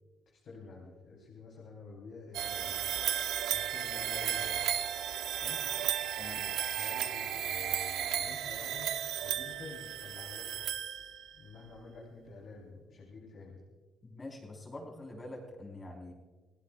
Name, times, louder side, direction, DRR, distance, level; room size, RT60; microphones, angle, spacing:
voice 1, 0.3-2.8 3.5-4.6 5.3-5.7 6.8-8.9 9.2-10.7 11.4-13.6, left 3 dB, 65° left, -3 dB, 4.0 m, -49 dB
sound 1, 2.3-11.4, right 10 dB, 80° right, 0.9 m, -34 dB
voice 2, 14.0-16.1, left 2 dB, 25° left, 0 dB, 4.6 m, -45 dB
28.5 x 17.0 x 2.6 m, 1.3 s
cardioid pair, 80°, 0 cm